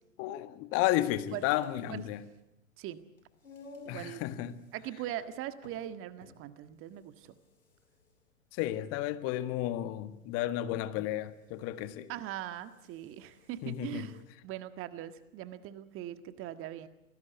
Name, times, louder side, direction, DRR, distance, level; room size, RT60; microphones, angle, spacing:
voice 1, 0.2-2.2 3.9-4.6 8.5-12.1 13.6-14.1, left 14 dB, 35° left, 11 dB, 1.7 m, -32 dB
sound 1, 0.8-14.3, left 4 dB, 80° left, 6.3 m, -58 dB
voice 2, 3.8-4.2 4.7-7.3 12.1-14.2 14.4-16.9, right 12 dB, 30° right, 11 dB, 1.7 m, -41 dB
27.5 x 19.5 x 8.2 m, 0.90 s
figure-of-eight pair, 100°, 40 cm